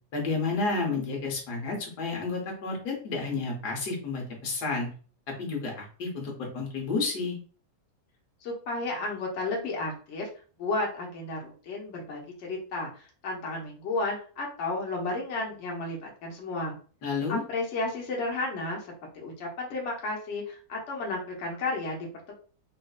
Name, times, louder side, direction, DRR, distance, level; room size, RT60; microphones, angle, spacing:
voice 1, 0.1-4.9 5.4-7.4 17.0-17.4, left 3 dB, 80° left, 0 dB, 1.6 m, -31 dB
voice 2, 8.4-10.3 10.6-16.8 17.3-18.9 19.1-22.3, left 2 dB, 50° left, -1 dB, 1.2 m, -33 dB
4.2 x 2.6 x 2.3 m, 0.40 s
omnidirectional pair, 1.7 m